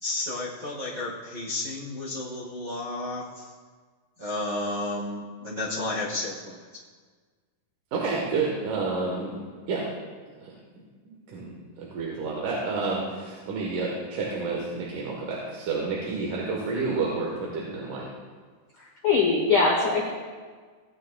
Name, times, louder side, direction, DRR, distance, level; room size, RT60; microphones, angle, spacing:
voice 1, 0.0-3.5 4.2-6.7, left 2 dB, 45° right, -8 dB, 1.1 m, -32 dB
voice 2, 7.9-9.9 10.4-10.5 11.1-11.5 11.8-18.1, right 4 dB, 75° right, -3 dB, 2.7 m, -30 dB
voice 3, 18.8-20.1, left 4 dB, 85° left, -1 dB, 1.1 m, -22 dB
17.0 x 9.4 x 2.2 m, 1.5 s
omnidirectional pair, 3.8 m